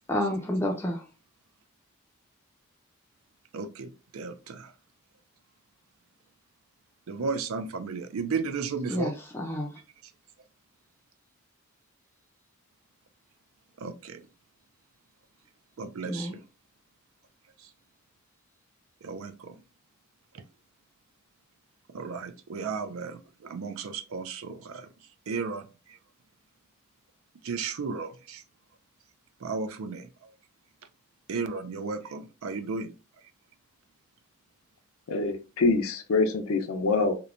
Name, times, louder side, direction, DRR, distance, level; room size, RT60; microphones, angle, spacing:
voice 1, 0.1-1.0 8.9-9.8 16.0-16.4, left 1 dB, 10° left, 0.3 m, -30 dB
voice 2, 3.5-4.7 7.1-9.1 13.8-14.2 15.8-16.4 19.0-19.5 21.9-24.9 25.3-26.0 27.4-28.4 29.4-30.3 31.3-32.9, right 4 dB, 90° right, 0.4 m, -34 dB
voice 3, 35.1-37.2, left 3 dB, 80° left, 0.4 m, -25 dB
3.0 x 2.1 x 2.4 m
head